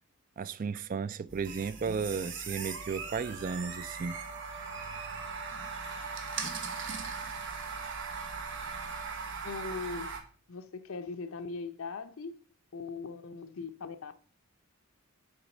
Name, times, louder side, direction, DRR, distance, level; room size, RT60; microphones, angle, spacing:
voice 1, 0.4-4.2, right 5 dB, 40° right, 0.3 m, -34 dB
sound 1, 1.3-10.2, right 5 dB, 60° right, 1.1 m, -39 dB
Wind instrument woodwind instrument, 2.6-9.3, right 3 dB, 5° right, 2.5 m, -49 dB
voice 2, 9.4-10.2 10.5-12.4 12.7-14.1, left 4 dB, 70° left, 0.6 m, -40 dB
7.1 x 4.0 x 5.3 m
head